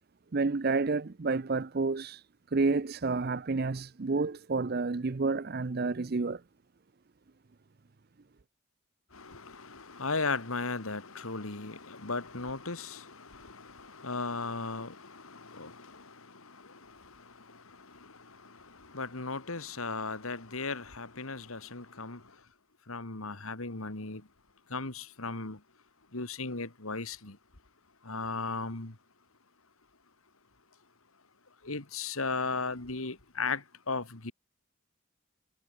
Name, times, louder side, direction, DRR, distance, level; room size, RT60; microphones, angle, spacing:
voice 1, 0.3-2.2 2.5-6.4, right 3 dB, 45° right, 0.5 m, -30 dB
voice 2, 9.1-22.2 22.9-24.2 24.7-25.6 26.1-27.4 28.0-28.9 31.6-34.3, left 4 dB, 80° left, 2.5 m, -37 dB
head